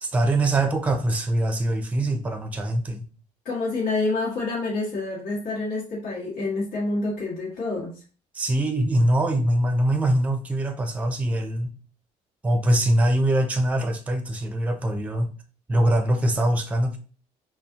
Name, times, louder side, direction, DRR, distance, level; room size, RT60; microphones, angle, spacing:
voice 1, 0.0-3.1 8.3-11.7 12.4-15.3 15.7-17.0, right 1 dB, 10° right, 0.5 m, -23 dB
voice 2, 3.4-7.9, left 3 dB, 85° left, 1.6 m, -27 dB
5.4 x 2.4 x 2.8 m
cardioid pair, 130°, 13 cm